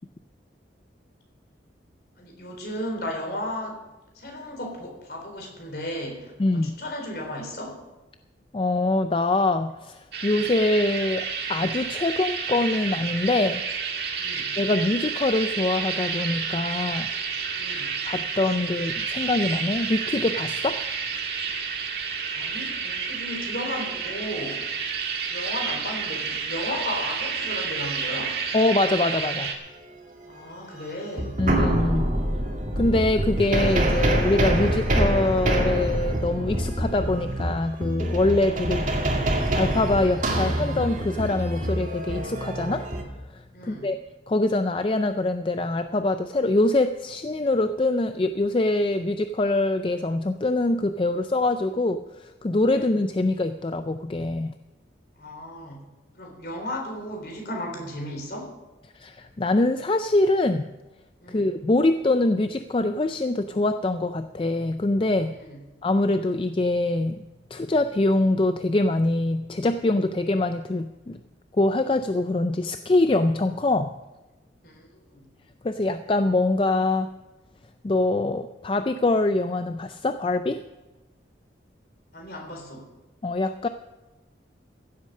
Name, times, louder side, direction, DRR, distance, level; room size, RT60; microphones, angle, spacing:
voice 1, 2.2-3.8 4.2-7.8 10.2-10.5 14.2-14.6 17.6-18.1 22.3-24.7 25.3-28.4 30.3-31.3 43.5-43.9 52.7-52.9 55.2-55.8 56.2-58.5 61.2-61.5 65.3-65.6 74.6-75.3 82.1-82.9, left 1 dB, 55° left, 1 dB, 3.9 m, -35 dB
voice 2, 6.4-6.8 8.5-13.6 14.6-17.1 18.1-20.8 28.5-29.6 31.4-32.2 32.8-38.9 39.6-42.8 43.3-44.0 44.3-54.5 58.9-60.7 61.3-65.3 65.8-67.2 67.5-71.2 71.5-73.9 75.6-77.1 77.8-80.6 83.2-83.7, left 2 dB, 30° left, 9 dB, 0.4 m, -24 dB
sound 1, 10.1-29.5, right 6 dB, 60° right, 1.7 m, -30 dB
sound 2, 30.7-30.8 31.2-43.0, right 1 dB, 45° right, 2.1 m, -25 dB
15.5 x 8.2 x 6.6 m, 1.1 s
head